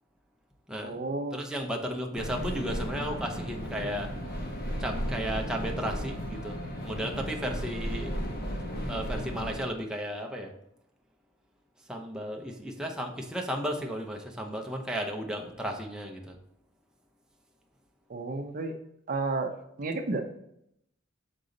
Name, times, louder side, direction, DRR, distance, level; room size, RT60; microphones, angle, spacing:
voice 1, 0.8-1.4 18.1-18.7 19.1-19.5 19.8-20.2, right 3 dB, 45° right, 5 dB, 0.6 m, -31 dB
voice 2, 1.3-4.1 4.8-6.6 6.8-8.2 8.9-10.5 11.9-16.4, equal, 5° right, 1 dB, 0.6 m, -34 dB
sound 1, 2.1-9.6, equal, 50° left, 1.3 m, -35 dB
6.7 x 3.9 x 3.9 m, 0.76 s
head